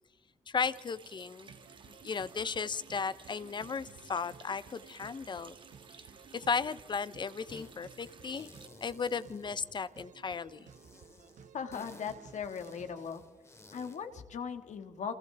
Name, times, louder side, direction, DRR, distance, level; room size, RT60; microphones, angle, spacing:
voice 1, 0.5-1.5 1.9-5.5 6.3-8.5 8.8-10.7, left 5 dB, 40° left, 17 dB, 0.6 m, -35 dB
Water tap faucet, 0.6-8.7, right 5 dB, 40° right, 1.3 m, -56 dB
sound 1, 1.5-13.2, right 6 dB, 80° right, 1.4 m, -56 dB
sound 2, 7.5-7.7 8.0-10.2 10.7-14.1, left 2 dB, 20° left, 2.3 m, -56 dB
voice 2, 11.5-13.2 13.7-15.1, left 6 dB, 75° left, 7 dB, 1.7 m, -39 dB
28.5 x 27.5 x 3.4 m, 1.4 s
wide cardioid pair, 135°, 12 cm